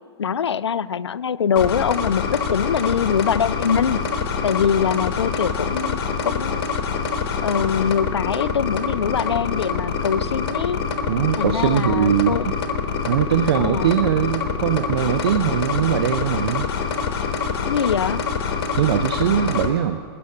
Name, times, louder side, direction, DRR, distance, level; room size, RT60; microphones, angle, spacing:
voice 1, 0.2-4.0 4.4-6.7 7.4-10.8 11.4-12.5 13.6-14.0 17.6-18.2, left 7 dB, 90° left, 20 dB, 0.4 m, -23 dB
sound 1, 1.6-19.7, left 5 dB, 55° left, 1.6 m, -25 dB
voice 2, 11.1-12.5 13.0-16.7 18.8-20.0, right 10 dB, 65° right, 11 dB, 0.6 m, -21 dB
18.5 x 6.9 x 8.3 m, 2.2 s
hypercardioid pair, 110°, 14 cm